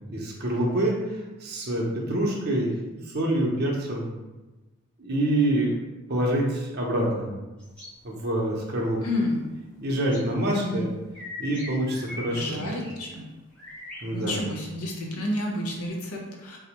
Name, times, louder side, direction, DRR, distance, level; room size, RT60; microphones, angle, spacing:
voice 1, 0.0-4.1 5.0-5.8 6.1-7.3 8.0-9.0 9.8-10.9 11.4-12.6 14.0-14.4, right 1 dB, 45° right, -2 dB, 0.6 m, -26 dB
sound 1, 7.6-8.0 10.1-10.2 11.1-12.3 12.6-13.0 13.5-14.6, left 2 dB, 5° left, 0.7 m, -41 dB
voice 2, 9.0-9.4 10.5-10.8 12.3-13.3 14.1-16.6, left 1 dB, 90° left, 0 dB, 0.7 m, -30 dB
4.2 x 2.0 x 2.8 m, 1.1 s
head